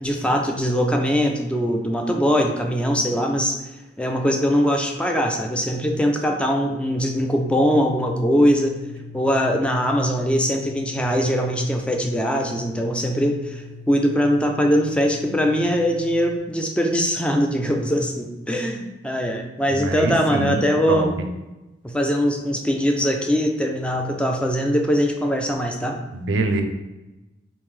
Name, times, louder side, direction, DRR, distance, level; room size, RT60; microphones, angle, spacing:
voice 1, 0.0-3.6 4.0-8.8 9.1-13.6 13.9-21.1 21.8-26.0, equal, 5° left, 2 dB, 0.3 m, -21 dB
sound 1, 7.4-16.4, left 4 dB, 75° left, 0.5 m, -40 dB
voice 2, 19.7-21.1 26.1-26.6, right 2 dB, 75° right, 5 dB, 0.5 m, -24 dB
3.1 x 2.7 x 3.6 m, 1.1 s
head